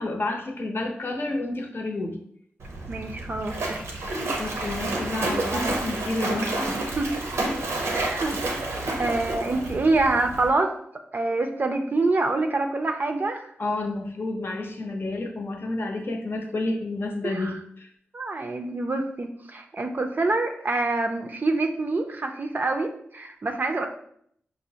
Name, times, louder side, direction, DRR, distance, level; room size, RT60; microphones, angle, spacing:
voice 1, 0.0-2.2 4.4-6.8 13.6-17.9, left 2 dB, 55° left, 3 dB, 0.7 m, -30 dB
Splash splatter, 2.6-10.5, right 2 dB, 85° right, 0.6 m, -30 dB
voice 2, 2.9-3.8 5.5-5.9 6.9-7.2 7.9-8.4 9.0-10.8 11.1-13.5 17.2-17.5 18.1-23.9, right 2 dB, 45° right, 5 dB, 0.4 m, -26 dB
5.0 x 2.0 x 2.8 m, 0.67 s
cardioid pair, 50°, 4 cm